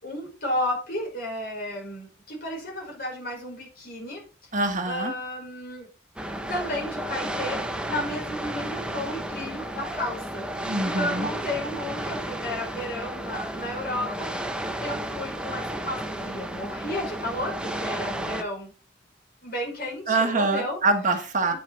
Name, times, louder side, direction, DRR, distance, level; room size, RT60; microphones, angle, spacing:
voice 1, 0.0-4.2 4.9-5.9 6.5-14.5 14.8-18.7 19.4-20.8, left 1 dB, 50° left, -1 dB, 5.8 m, -33 dB
voice 2, 4.5-5.1 10.7-11.3 20.1-21.5, right 3 dB, 40° right, 5 dB, 1.4 m, -24 dB
sound 1, 6.2-18.4, right 1 dB, 5° right, 0.8 m, -33 dB
9.0 x 7.3 x 4.3 m, 0.35 s
head